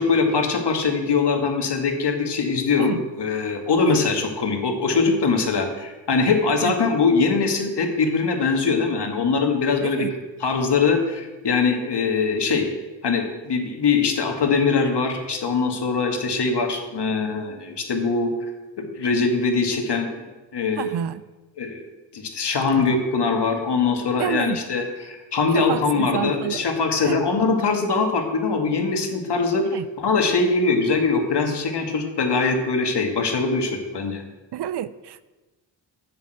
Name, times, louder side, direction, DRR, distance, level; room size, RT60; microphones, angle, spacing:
voice 1, 0.0-10.0 10.4-12.7 13.0-18.3 18.8-20.9 21.6-21.8 22.1-34.2, left 4 dB, 55° left, 4 dB, 2.1 m, -22 dB
voice 2, 9.8-10.2 20.8-21.2 22.7-22.8 24.2-24.6 25.5-26.7 27.0-27.3 29.7-29.9 34.5-35.2, right 10 dB, 60° right, 16 dB, 0.6 m, -29 dB
7.4 x 7.0 x 8.0 m, 1.2 s
supercardioid pair, 45°, 47 cm